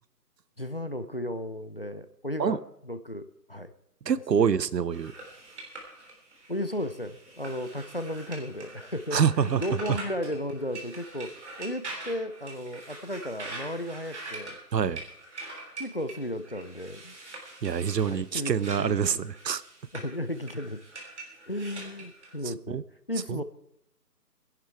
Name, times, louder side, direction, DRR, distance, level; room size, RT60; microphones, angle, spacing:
voice 1, 0.6-3.7 4.4-4.5 6.5-11.3 11.6-14.6 15.8-17.2 18.0-18.5 18.8-19.3 19.9-20.8 21.5-22.8 23.1-23.4, left 1 dB, 35° left, 11 dB, 0.6 m, -34 dB
voice 2, 4.1-5.1 9.1-9.6 14.7-15.0 17.6-19.6 22.7-22.8 23.3-23.4, right 7 dB, 90° right, 19 dB, 0.9 m, -26 dB
sound 1, 4.9-22.4, right 2 dB, 45° right, 3.7 m, -44 dB
19.5 x 11.0 x 4.5 m, 0.80 s
hypercardioid pair, 175°, 48 cm